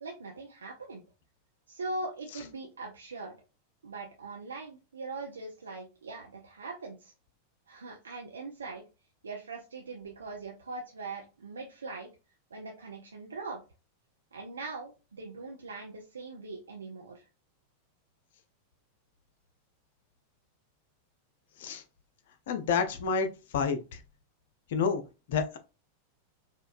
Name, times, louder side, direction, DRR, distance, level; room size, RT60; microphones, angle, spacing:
voice 1, 0.0-1.0 1.7-3.3 3.8-7.1 7.7-8.8 9.2-12.1 12.5-13.6 14.3-17.3, right 3 dB, 70° right, 0 dB, 0.5 m, -41 dB
voice 2, 22.5-23.3 23.5-23.8 24.7-25.0 25.3-25.6, left 6 dB, 55° left, 8 dB, 0.6 m, -28 dB
4.2 x 2.3 x 2.4 m, 0.30 s
figure-of-eight pair, 90°, 0 cm